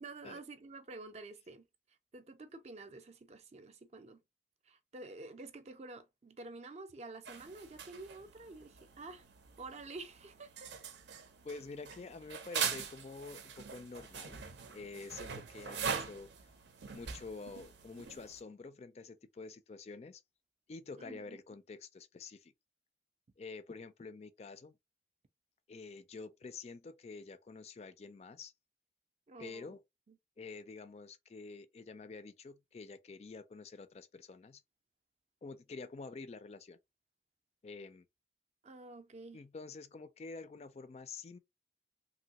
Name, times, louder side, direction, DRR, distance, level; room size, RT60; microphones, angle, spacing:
voice 1, 0.0-4.2 4.6-9.3 9.6-10.7 21.0-21.4 29.3-29.7 30.1-30.2 38.6-39.4, right 3 dB, 35° right, 0.4 m, -49 dB
sound 1, 7.2-18.4, right 6 dB, 80° right, 0.6 m, -43 dB
voice 2, 11.4-14.4 14.7-16.5 16.9-20.2 20.7-22.5 23.4-24.8 25.7-28.5 29.4-29.8 30.4-34.6 35.4-36.8 37.6-38.1 39.3-41.4, left 4 dB, 35° left, 0.3 m, -48 dB
3.1 x 2.6 x 2.8 m
head